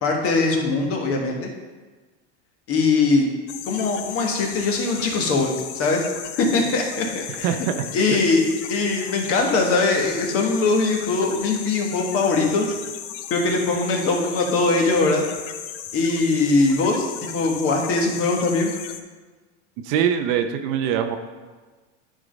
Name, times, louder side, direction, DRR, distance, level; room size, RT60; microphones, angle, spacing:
voice 1, 0.0-1.5 2.7-3.3 3.7-6.1 6.4-7.5 7.9-8.4 8.7-12.7 13.3-15.2 15.9-18.7, left 3 dB, 40° left, 1 dB, 1.5 m, -21 dB
sound 1, 3.5-19.0, left 9 dB, 80° left, 0.8 m, -36 dB
voice 2, 7.4-7.7 8.1-8.2 19.8-21.2, right 9 dB, 55° right, 7 dB, 0.7 m, -23 dB
9.8 x 3.8 x 5.1 m, 1.3 s
supercardioid pair, 130°, 36 cm